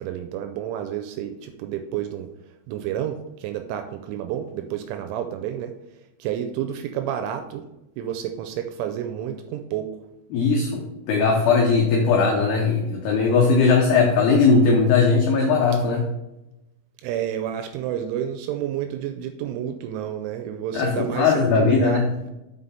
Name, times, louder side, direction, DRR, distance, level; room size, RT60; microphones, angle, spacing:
voice 1, 0.0-2.3 2.7-5.7 6.2-7.7 8.0-9.9 17.0-22.0, right 10 dB, 85° right, 6 dB, 2.8 m, -30 dB
voice 2, 10.3-16.0 20.7-22.1, left 4 dB, 85° left, 0 dB, 2.3 m, -19 dB
6.6 x 5.6 x 4.1 m, 0.94 s
omnidirectional pair, 5.9 m